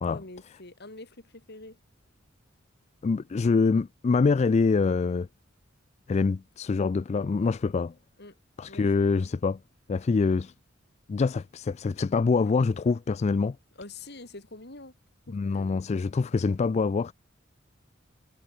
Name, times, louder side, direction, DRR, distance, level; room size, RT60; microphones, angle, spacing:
voice 1, 0.1-1.8 8.2-8.4 8.6-8.9 13.8-14.9 15.3-15.9, left 2 dB, 55° left, 4.2 m, -45 dB
voice 2, 3.0-5.3 6.1-7.9 8.6-9.6 9.9-10.5 11.1-13.6 15.3-17.1, left 4 dB, 35° left, 0.3 m, -25 dB
head